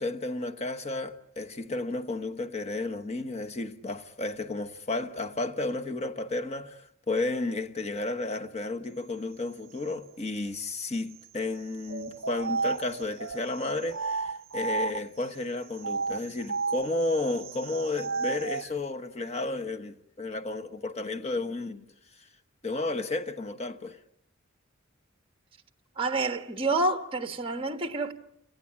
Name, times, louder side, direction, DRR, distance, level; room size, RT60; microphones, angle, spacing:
voice 1, 0.0-21.8 22.6-24.0, left 2 dB, 30° left, 1.2 m, -32 dB
sound 1, 11.8-15.2 15.8-18.7, right 4 dB, 65° right, 0.9 m, -33 dB
voice 2, 26.0-28.1, right 2 dB, 25° right, 1.4 m, -28 dB
29.5 x 18.5 x 8.6 m
head